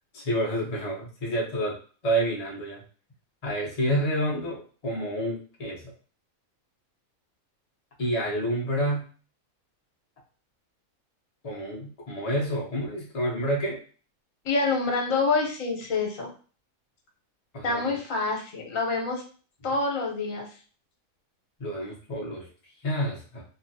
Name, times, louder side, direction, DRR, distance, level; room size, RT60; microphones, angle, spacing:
voice 1, 0.1-1.8 2.0-2.8 3.4-5.9 8.0-9.1 11.4-13.8 17.5-17.9 21.6-22.5 22.8-23.4, right 1 dB, 35° left, -4 dB, 0.7 m, -29 dB
voice 2, 14.4-16.3 17.6-19.2 19.6-20.5, left 3 dB, 70° left, 0 dB, 1.2 m, -26 dB
3.0 x 2.5 x 2.6 m, 0.40 s
omnidirectional pair, 1.5 m